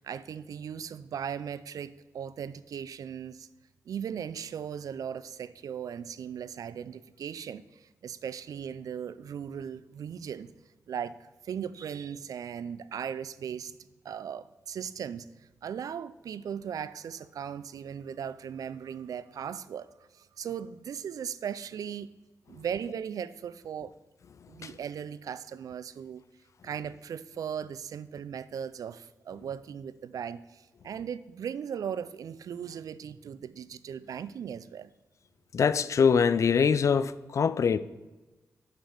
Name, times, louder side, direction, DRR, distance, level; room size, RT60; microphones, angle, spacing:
voice 1, 0.0-3.5 3.9-10.5 10.9-13.7 14.0-15.3 15.6-22.1 22.5-23.9 24.5-26.2 26.6-34.9, right 8 dB, 80° right, 0.3 m, -38 dB
voice 2, 35.5-37.8, left 6 dB, 60° left, 0.4 m, -23 dB
6.6 x 6.2 x 4.9 m
cardioid pair, 80°, 6 cm